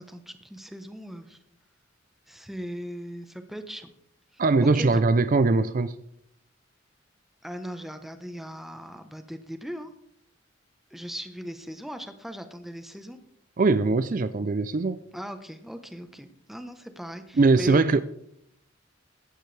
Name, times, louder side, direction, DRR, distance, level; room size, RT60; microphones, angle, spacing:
voice 1, 0.0-1.4 2.3-3.9 4.6-5.0 7.4-9.9 10.9-13.2 15.1-17.8, equal, ahead, 8 dB, 1.0 m, -38 dB
voice 2, 4.4-5.9 13.6-15.0 17.4-18.0, right 3 dB, 45° right, 13 dB, 0.5 m, -21 dB
16.5 x 12.0 x 3.4 m, 0.72 s
head